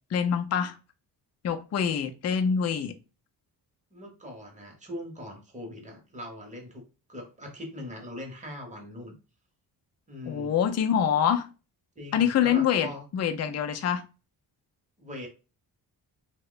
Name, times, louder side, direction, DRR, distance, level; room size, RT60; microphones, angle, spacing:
voice 1, 0.1-0.8 1.4-3.0 10.3-11.5 12.1-14.0, left 8 dB, 40° left, 7 dB, 0.4 m, -25 dB
voice 2, 3.9-6.8 7.1-9.1 10.1-10.5 12.0-13.0 15.0-15.3, left 1 dB, 15° right, 1 dB, 0.9 m, -41 dB
2.8 x 2.1 x 3.8 m, 0.32 s
wide cardioid pair, 140°, 42 cm